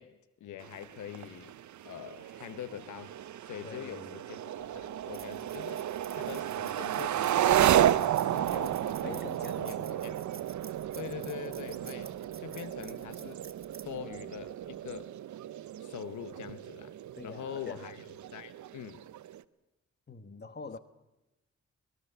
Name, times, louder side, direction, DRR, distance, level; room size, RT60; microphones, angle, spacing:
voice 1, 0.0-1.5 1.8-9.2 9.6-9.8 10.0-10.4 10.9-13.4 13.8-15.1 15.8-16.9 17.2-18.0 18.3-19.0, left 10 dB, 85° left, 0.9 m, -44 dB
sound 1, 0.6-19.4, right 11 dB, 80° right, 0.7 m, -32 dB
voice 2, 3.6-4.2 9.0-10.1 11.2-11.3 17.2-17.9 20.1-20.8, left 4 dB, 35° left, 1.5 m, -46 dB
sound 2, 4.6-15.0, right 6 dB, 45° right, 1.9 m, -53 dB
25.0 x 20.0 x 6.8 m
cardioid pair, 70°, 29 cm